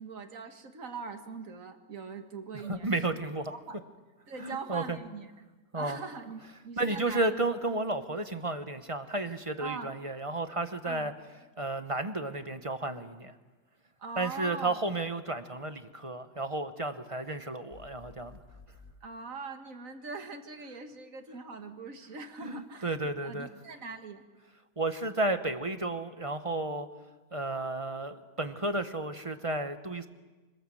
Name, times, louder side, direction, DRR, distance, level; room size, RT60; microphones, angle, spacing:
voice 1, 0.0-3.2 3.5-3.8 4.3-5.3 5.7-7.3 9.6-9.9 10.8-11.1 14.0-14.8 19.0-23.0 23.2-24.2, right 4 dB, 55° right, 6 dB, 2.1 m, -42 dB
voice 2, 2.7-3.5 4.4-5.0 5.7-6.0 6.8-11.1 11.6-13.3 14.2-18.4 22.4-23.5 24.8-26.9 27.3-30.1, right 2 dB, 25° right, 9 dB, 0.9 m, -32 dB
sound 1, 17.7-19.0, left 4 dB, 50° left, 2.4 m, -53 dB
25.5 x 19.5 x 7.7 m, 1.2 s
omnidirectional pair, 1.7 m